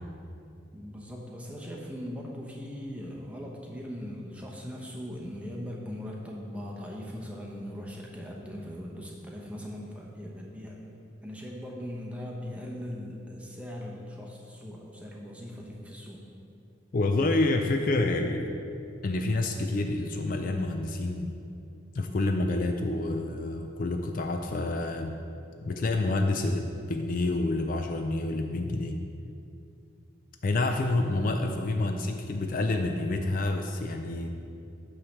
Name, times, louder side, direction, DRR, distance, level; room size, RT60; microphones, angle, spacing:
voice 1, 0.7-10.8 11.2-16.2, equal, 5° right, -2 dB, 0.8 m, -40 dB
voice 2, 16.9-18.5 19.0-21.3 21.9-25.1 25.6-29.0 30.4-34.3, left 2 dB, 45° left, 4 dB, 0.4 m, -28 dB
8.8 x 3.2 x 6.3 m, 2.5 s
head